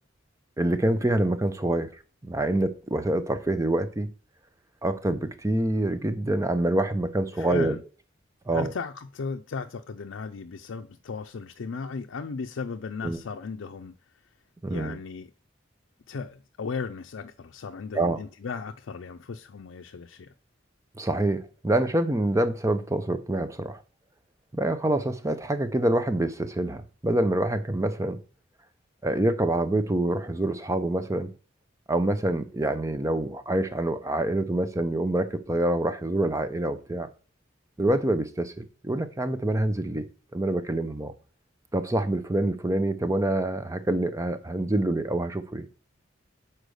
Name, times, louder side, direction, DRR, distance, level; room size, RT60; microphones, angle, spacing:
voice 1, 0.6-1.9 2.2-4.1 4.8-7.8 8.5-8.7 13.0-13.2 14.6-15.0 17.9-18.2 21.0-23.8 24.5-28.2 29.0-31.3 31.9-37.1 37.8-40.1 40.3-41.1 41.7-45.8, right 1 dB, 15° right, 0.7 m, -26 dB
voice 2, 7.4-7.8 8.5-13.9 14.7-15.3 16.1-20.3, left 5 dB, 80° left, 0.5 m, -36 dB
6.6 x 4.4 x 6.4 m
head